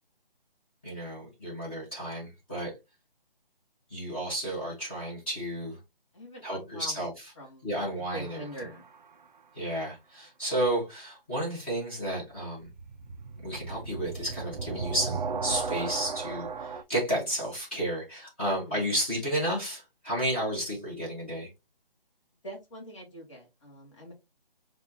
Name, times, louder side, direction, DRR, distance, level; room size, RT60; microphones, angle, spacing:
voice 1, 0.8-2.7 3.9-5.8 6.4-7.2 7.6-8.4 9.5-12.7 13.4-21.5, right 1 dB, 10° left, 0.9 m, -32 dB
voice 2, 6.1-7.7 8.1-8.8 18.5-18.8 22.4-24.1, right 1 dB, 35° left, 1.4 m, -44 dB
sound 1, 8.1-8.9 12.5-16.8, right 5 dB, 50° right, 0.4 m, -35 dB
5.2 x 2.4 x 2.6 m
hypercardioid pair, 170°, 29 cm